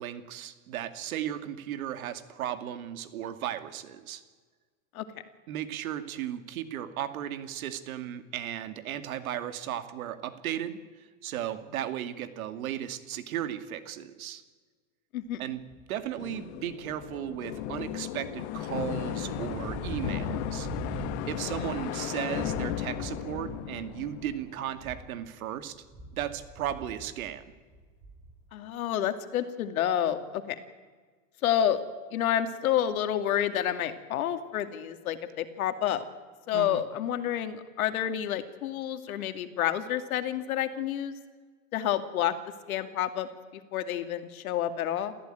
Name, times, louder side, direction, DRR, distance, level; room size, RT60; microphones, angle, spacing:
voice 1, 0.0-4.2 5.5-14.4 15.4-15.6 15.9-25.8 26.1-27.4 36.5-36.8, right 11 dB, 70° right, 10 dB, 2.4 m, -35 dB
sound 1, 15.7-16.0 16.5-25.3 25.6-28.5, right 1 dB, 15° right, 5.3 m, -42 dB
sound 2, 16.2-25.0, left 13 dB, 50° left, 1.4 m, -36 dB
voice 2, 28.5-30.6 31.4-31.8 32.1-36.0 36.5-41.2 41.7-42.3 42.7-43.3 43.7-45.1, left 10 dB, 70° left, 9 dB, 2.4 m, -29 dB
28.0 x 14.5 x 9.2 m, 1.5 s
supercardioid pair, 140°, 43 cm